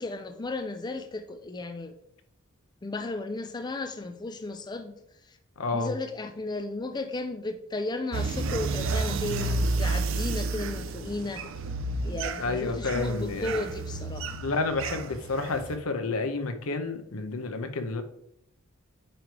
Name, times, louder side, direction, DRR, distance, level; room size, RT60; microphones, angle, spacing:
voice 1, 0.0-1.9 2.8-5.4 5.7-11.5 12.0-14.4, left 2 dB, 20° left, 8 dB, 0.4 m, -34 dB
voice 2, 5.6-5.9 12.4-13.6 14.4-18.0, left 3 dB, 75° left, 8 dB, 0.8 m, -30 dB
sound 1, 8.1-15.8, right 3 dB, 60° right, 0.5 m, -31 dB
8.9 x 3.2 x 4.6 m, 0.77 s
head